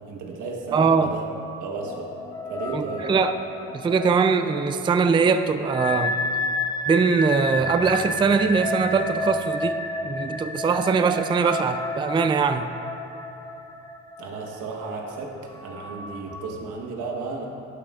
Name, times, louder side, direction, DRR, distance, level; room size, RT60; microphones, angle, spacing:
voice 1, 0.1-1.2 1.6-2.1 2.5-3.1 14.2-17.5, right 3 dB, 85° right, 1 dB, 1.2 m, -34 dB
voice 2, 0.7-1.1 2.7-3.3 3.7-6.2 6.9-9.8 10.0-12.7, right 5 dB, 15° right, 9 dB, 0.3 m, -22 dB
sound 1, 1.7-16.5, left 2 dB, 15° left, 0.7 m, -31 dB
11.5 x 9.3 x 2.4 m, 2.7 s
cardioid pair, 90°, 30 cm